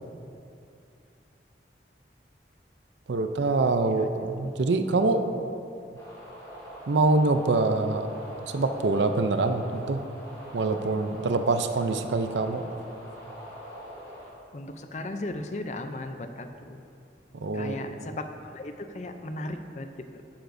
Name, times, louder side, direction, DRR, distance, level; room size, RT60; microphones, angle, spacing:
voice 1, 3.1-5.3 6.9-8.1 8.4-10.0 10.5-12.7 17.3-17.8, right 3 dB, 85° right, 7 dB, 0.5 m, -25 dB
sound 1, 5.9-14.3, equal, 25° left, 2.1 m, -43 dB
voice 2, 14.5-16.8 17.5-20.2, left 2 dB, 40° left, 7 dB, 0.5 m, -37 dB
11.5 x 9.3 x 2.6 m, 2.5 s
head